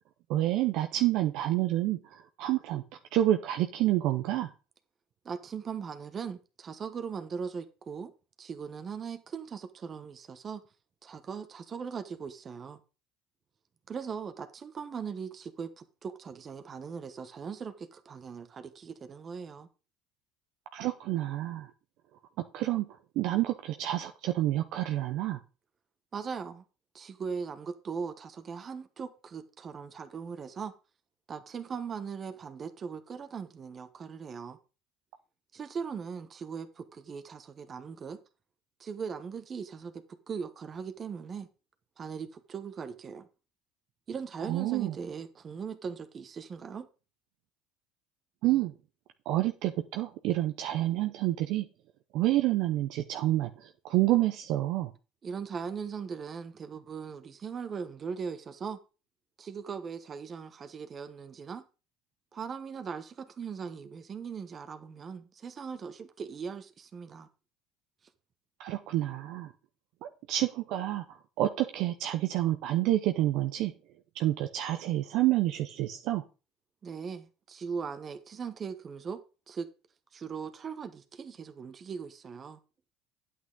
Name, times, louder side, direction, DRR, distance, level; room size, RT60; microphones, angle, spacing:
voice 1, 0.3-2.8 3.1-4.5 20.7-21.7 22.5-22.9 23.2-25.4 44.5-44.9 48.4-48.7 49.3-51.7 52.1-54.9 68.6-69.5 70.3-73.7 74.1-76.2, right 14 dB, 65° right, 0.6 m, -28 dB
voice 2, 5.2-8.1 8.4-10.6 11.0-12.8 13.9-19.7 26.1-26.6 26.9-30.7 31.3-34.6 35.5-38.2 38.8-41.5 42.0-43.3 44.1-46.9 55.2-58.8 59.4-61.6 62.3-67.3 76.8-79.2 79.5-79.7 80.1-82.6, right 6 dB, 35° right, 1.1 m, -39 dB
9.4 x 8.5 x 3.8 m
hypercardioid pair, 75°, 0 cm